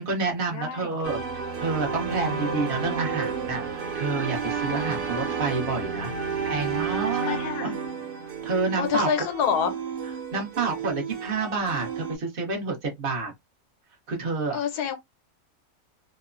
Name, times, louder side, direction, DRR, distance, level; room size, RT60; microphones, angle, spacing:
voice 1, 0.0-6.1 6.4-7.5 8.4-9.1 10.3-13.3 14.1-14.6, right 4 dB, 45° right, 0.8 m, -29 dB
voice 2, 0.5-1.0 4.7-5.0 7.1-7.7 8.8-9.7 14.5-15.0, left 7 dB, 85° left, 1.2 m, -27 dB
sound 1, 1.0-12.2, right 6 dB, 80° right, 1.2 m, -31 dB
3.0 x 2.0 x 2.4 m
omnidirectional pair, 1.7 m